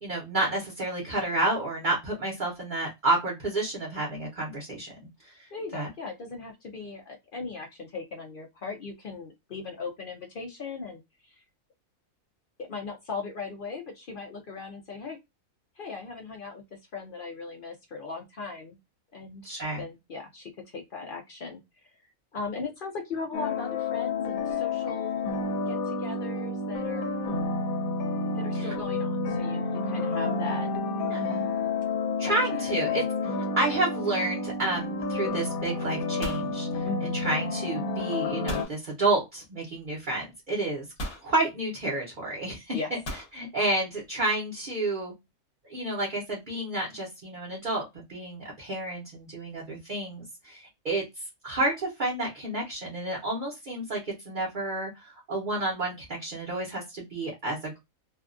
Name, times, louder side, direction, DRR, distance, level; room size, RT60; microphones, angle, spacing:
voice 1, 0.0-5.9 19.4-19.8 28.5-28.7 31.0-31.4 32.2-33.0 33.6-40.9 41.2-42.7 43.3-45.1 45.6-57.8, right 2 dB, 40° right, -3 dB, 0.8 m, -30 dB
voice 2, 5.5-11.4 12.6-15.2 15.8-18.8 19.1-19.5 19.8-21.9 22.3-25.3 25.7-27.1 28.3-30.7 32.2-32.4 32.7-33.0 36.8-37.1 42.7-42.9, left 4 dB, 65° left, 2 dB, 0.5 m, -38 dB
sound 1, 23.3-38.7, left 3 dB, 90° left, 1.1 m, -30 dB
sound 2, 34.5-34.9 35.2-35.6 35.9-37.4 38.5-38.8 39.9-40.0 41.0-41.3 43.1-43.4, equal, 45° left, 1.1 m, -37 dB
2.6 x 2.3 x 2.4 m, 0.21 s
omnidirectional pair, 1.5 m